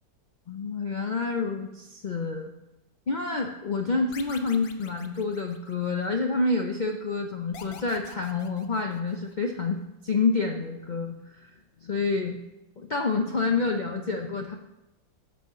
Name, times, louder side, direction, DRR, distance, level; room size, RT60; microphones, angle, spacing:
voice 1, 0.5-2.5 3.1-11.5 11.8-12.4 12.8-14.5, left 4 dB, 85° left, 3 dB, 0.4 m, -28 dB
sound 1, 4.1-6.1 7.5-9.3, left 7 dB, 60° left, 1.1 m, -46 dB
8.3 x 5.6 x 6.6 m, 0.96 s
omnidirectional pair, 1.8 m